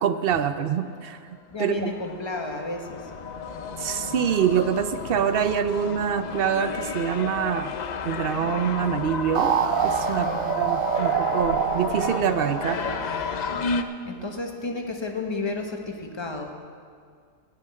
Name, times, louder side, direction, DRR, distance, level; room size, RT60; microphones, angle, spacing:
voice 1, 0.0-1.2 1.6-2.0 3.8-7.7 8.0-9.5 9.8-10.3 10.6-12.8, right 8 dB, 55° right, 11 dB, 0.7 m, -25 dB
sound 1, 1.1-1.2 1.8-13.8, left 5 dB, 60° left, 0.4 m, -32 dB
voice 2, 1.5-3.3 10.2-10.6 14.0-16.5, left 3 dB, 20° left, 4 dB, 1.0 m, -32 dB
sound 2, 9.3-13.8, right 9 dB, 80° right, 1.0 m, -26 dB
15.5 x 6.0 x 8.6 m, 2.1 s
omnidirectional pair, 1.4 m